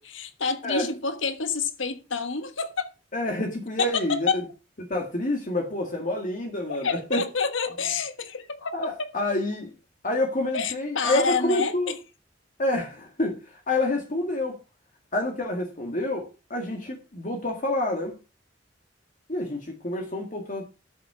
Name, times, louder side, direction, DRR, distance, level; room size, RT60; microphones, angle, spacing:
voice 1, 0.0-2.9 3.8-4.5 6.8-9.2 10.5-12.0, left 5 dB, 85° left, 1.4 m, -28 dB
voice 2, 3.1-4.3 4.8-7.3 8.7-9.7 10.0-11.9 12.6-14.6 15.1-18.2 19.3-20.6, left 1 dB, 45° left, 1.9 m, -28 dB
12.5 x 7.2 x 4.9 m
head